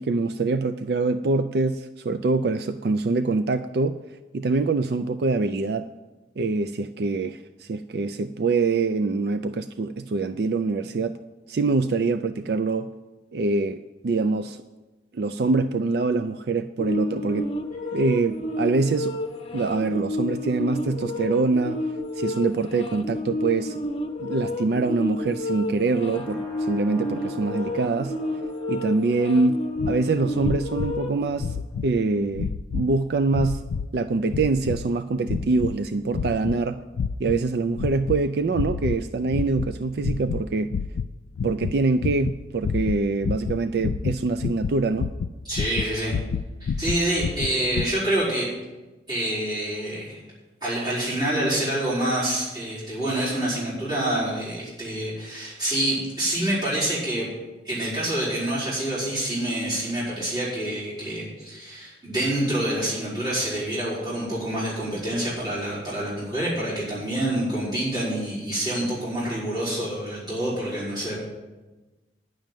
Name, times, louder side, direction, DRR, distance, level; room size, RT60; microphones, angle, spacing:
voice 1, 0.0-4.0 4.3-5.9 6.4-11.2 11.5-12.9 13.3-14.6 15.1-17.5 17.9-19.1 19.5-21.8 22.2-23.8 24.2-28.1 28.7-33.6 33.9-36.8 37.2-40.8 41.4-45.1, right 3 dB, 60° right, 9 dB, 0.4 m, -24 dB
sound 1, 16.8-31.3, left 2 dB, 30° left, 0.8 m, -31 dB
sound 2, 26.1-31.8, right 2 dB, ahead, 3.4 m, -46 dB
sound 3, 29.8-30.0 30.4-31.0 31.3-31.9 32.3-32.9 33.3-33.9 34.3-34.9 35.3-35.8 36.1-36.6 36.9-37.4 37.8-38.2 38.5-39.0 39.3-39.7 40.0-40.5 40.7-47.9, left 6 dB, 80° left, 0.3 m, -29 dB
voice 2, 45.5-46.2 46.6-48.5 49.1-50.2 50.6-57.3 57.6-71.2, right 1 dB, 25° right, -10 dB, 4.6 m, -27 dB
10.5 x 6.4 x 9.0 m, 1.2 s
head